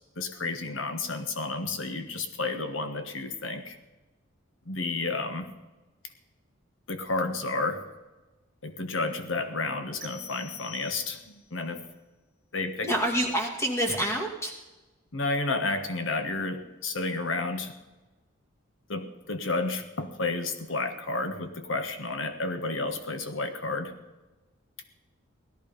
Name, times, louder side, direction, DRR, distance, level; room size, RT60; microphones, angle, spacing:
voice 1, 0.2-3.8 4.7-5.5 6.9-7.8 8.6-11.8 12.5-12.9 15.1-17.7 18.9-23.9, left 3 dB, 75° left, 8 dB, 1.4 m, -31 dB
sound 1, 10.0-11.5, left 3 dB, 55° right, 1.7 m, -47 dB
voice 2, 12.8-14.5, equal, 15° left, 2 dB, 2.3 m, -27 dB
17.5 x 13.0 x 5.2 m, 1.1 s
head